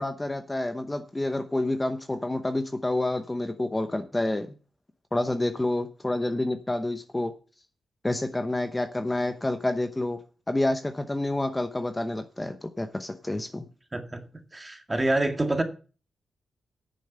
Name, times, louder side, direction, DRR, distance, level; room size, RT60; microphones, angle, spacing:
voice 1, 0.0-4.5 5.1-7.3 8.0-10.2 10.5-13.7, left 1 dB, 15° left, 8 dB, 0.9 m, -28 dB
voice 2, 14.5-15.6, right 2 dB, 20° right, 6 dB, 2.0 m, -26 dB
9.1 x 7.2 x 6.7 m, 0.37 s
cardioid pair, 85°, 0 cm